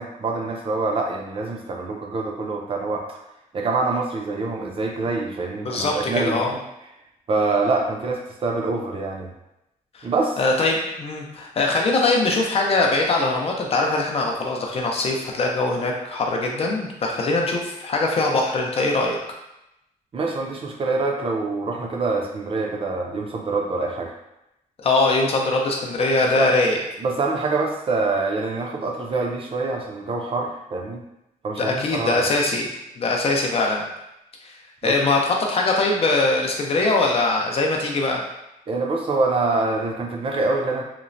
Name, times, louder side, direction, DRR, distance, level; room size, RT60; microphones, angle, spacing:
voice 1, 0.0-3.2 3.5-6.5 7.3-9.3 10.0-10.4 20.1-24.1 26.4-26.5 27.0-31.0 31.4-32.3 34.8-34.9 38.7-40.8, right 3 dB, 40° right, 1 dB, 0.4 m, -25 dB
voice 2, 5.6-6.5 9.9-10.1 10.4-19.2 24.8-26.8 31.6-32.7 33.0-33.8 34.8-38.2, left 2 dB, 45° left, 0 dB, 0.5 m, -22 dB
2.9 x 2.0 x 2.5 m, 0.87 s
wide cardioid pair, 135°, 14 cm